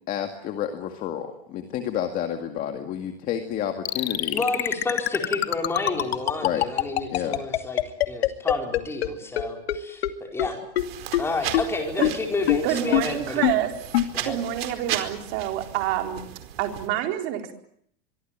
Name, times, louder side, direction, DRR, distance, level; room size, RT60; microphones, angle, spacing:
voice 1, 0.1-4.4 6.4-6.7 7.1-7.4, left 10 dB, 25° left, 6 dB, 2.1 m, -30 dB
sound 1, 3.9-9.1 9.4-9.5 9.7-9.8 10.0-10.1 10.4-10.5 10.8-10.9 11.1-11.2 11.5-11.6 12.0-12.1 12.5-12.6 12.9-13.0 13.4-13.5 13.9-14.1, left 14 dB, 85° left, 2.6 m, -21 dB
voice 2, 4.3-7.8 8.1-10.6 11.2-13.4 14.1-14.4, left 2 dB, 10° left, 3 dB, 4.6 m, -30 dB
sound 2, 10.8-16.9, right 11 dB, 75° right, 4.7 m, -36 dB
voice 3, 12.6-13.7 14.2-16.2 16.6-17.5, right 11 dB, 40° right, 4 dB, 4.0 m, -27 dB
25.0 x 24.0 x 8.8 m, 0.69 s
supercardioid pair, 175°, 30 cm